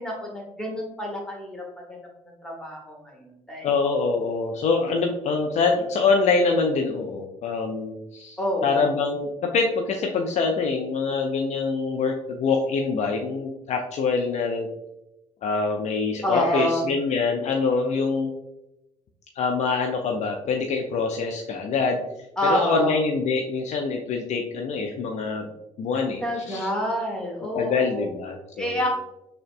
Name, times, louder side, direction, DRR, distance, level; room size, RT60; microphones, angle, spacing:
voice 1, 0.0-2.0 2.4-3.7 4.9-5.0 8.4-8.9 16.2-16.9 22.4-23.0 26.2-28.1 28.6-28.9, equal, 5° left, -2 dB, 1.3 m, -28 dB
voice 2, 3.6-14.7 15.4-18.3 19.4-22.0 22.4-25.5 25.8-26.2 26.5-26.7 27.5-28.8, left 4 dB, 45° left, 2 dB, 0.5 m, -25 dB
6.2 x 2.2 x 2.5 m, 0.90 s
figure-of-eight pair, 45°, 16 cm